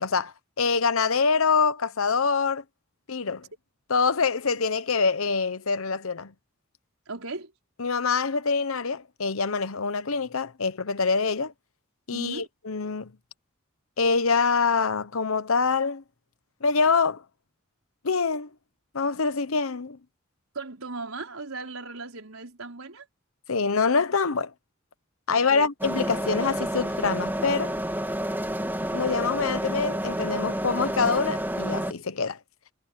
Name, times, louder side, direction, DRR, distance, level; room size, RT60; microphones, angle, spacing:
voice 1, 0.0-2.6 3.1-3.4 3.9-6.3 7.8-11.5 12.1-13.1 14.0-16.0 16.6-17.2 18.0-18.5 18.9-20.0 23.5-24.5 25.3-27.7 28.9-32.4, left 5 dB, 75° left, 1.0 m, -25 dB
voice 2, 7.1-7.5 12.1-12.5 20.5-23.1 25.3-25.7, right 3 dB, 85° right, 4.7 m, -37 dB
sound 1, 25.8-31.9, right 1 dB, 10° right, 3.0 m, -29 dB
head